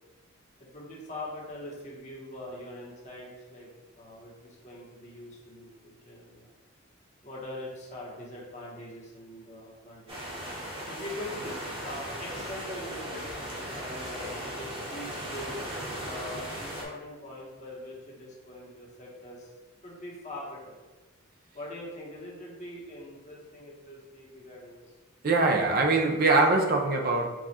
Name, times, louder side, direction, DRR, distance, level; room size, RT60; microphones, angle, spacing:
voice 1, 0.6-3.7 4.0-6.5 7.2-10.4 10.9-11.4 11.8-13.3 13.7-15.5 16.0-19.5 19.8-20.8 21.5-24.8, left 1 dB, 35° left, -4 dB, 1.1 m, -42 dB
sound 1, 10.1-16.8, equal, 25° right, 1.0 m, -37 dB
voice 2, 25.2-27.3, right 3 dB, 45° right, 2 dB, 0.5 m, -23 dB
4.7 x 2.4 x 4.2 m, 1.2 s
head